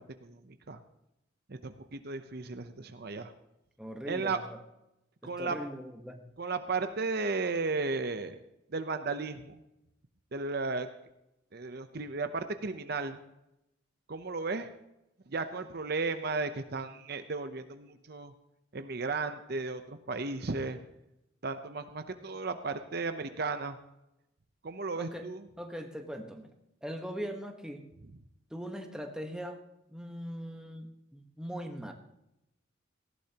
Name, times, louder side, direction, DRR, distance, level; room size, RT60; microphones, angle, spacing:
voice 1, 0.2-0.8 1.5-3.3 4.0-4.4 5.2-5.6 6.4-8.4 8.7-9.6 10.3-10.9 11.5-13.2 14.1-14.7 15.3-18.3 18.7-20.8 21.4-23.8 24.6-25.4, right 3 dB, 55° right, 9 dB, 0.7 m, -34 dB
voice 2, 3.8-4.6 5.2-6.3 24.9-25.3 25.6-26.5 26.8-27.8 28.5-29.6 29.9-31.9, equal, 5° right, 3 dB, 1.2 m, -40 dB
18.0 x 15.0 x 2.9 m, 0.87 s
head